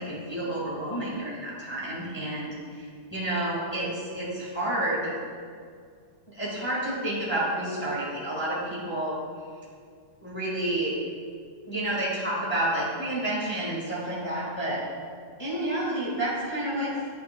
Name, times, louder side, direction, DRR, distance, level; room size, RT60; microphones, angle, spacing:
voice 1, 0.0-5.2 6.3-9.2 10.2-10.9 11.7-14.8 15.4-17.1, right 1 dB, 20° left, -6 dB, 0.6 m, -30 dB
9.1 x 9.0 x 2.3 m, 2.1 s
omnidirectional pair, 3.5 m